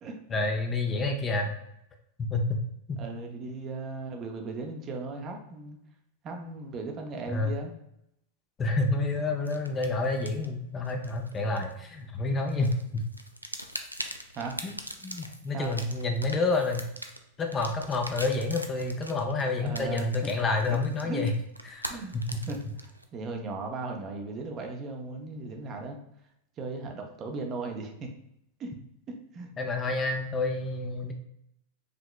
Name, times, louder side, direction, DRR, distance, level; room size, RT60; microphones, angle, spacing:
voice 1, 0.3-1.5 2.2-2.6 2.9-3.0 7.3-7.6 8.6-13.0 14.6-14.8 15.0-16.9 17.4-21.3 21.6-21.9 22.1-22.3 29.6-31.1, left 3 dB, 20° left, 3 dB, 0.5 m, -29 dB
voice 2, 3.0-5.8 6.2-7.7 14.3-14.6 15.5-15.8 19.6-20.1 20.7-20.8 21.0-21.3 21.9-22.1 22.5-22.7 23.1-26.0 26.6-28.1 28.6-28.7 29.1-29.5, right 3 dB, 30° right, 3 dB, 0.6 m, -37 dB
sound 1, 9.4-12.2 12.5-23.0, equal, 90° right, 0.3 m, -42 dB
4.9 x 2.9 x 2.3 m, 0.78 s
figure-of-eight pair, 90°, 0 cm